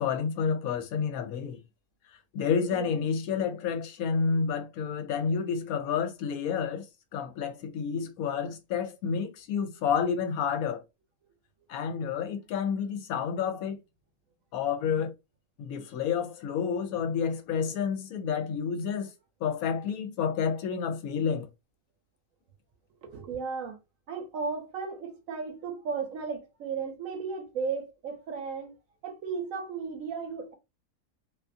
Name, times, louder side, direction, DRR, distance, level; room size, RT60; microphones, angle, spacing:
voice 1, 0.0-1.6 2.3-6.9 7.1-10.8 11.7-13.8 14.5-15.1 15.6-19.1 19.4-21.5, left 6 dB, 80° left, 1.0 m, -29 dB
voice 2, 2.7-3.0 4.3-4.4 23.0-23.8 24.1-28.7 29.0-30.5, right 5 dB, 70° right, 1.1 m, -35 dB
2.7 x 2.4 x 2.5 m
omnidirectional pair, 1.5 m